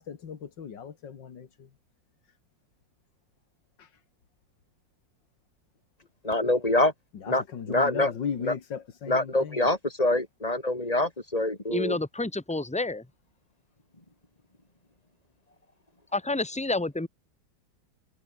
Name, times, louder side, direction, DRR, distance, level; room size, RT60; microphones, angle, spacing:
voice 1, 0.0-1.7 3.8-3.9 7.2-9.7, left 7 dB, 80° left, 2.5 m, -37 dB
voice 2, 6.2-6.9 7.3-8.1 8.4-8.5 9.1-12.0, left 2 dB, 20° left, 3.6 m, -25 dB
voice 3, 11.7-13.1 16.1-17.1, left 2 dB, 5° left, 1.8 m, -29 dB
omnidirectional pair, 2.0 m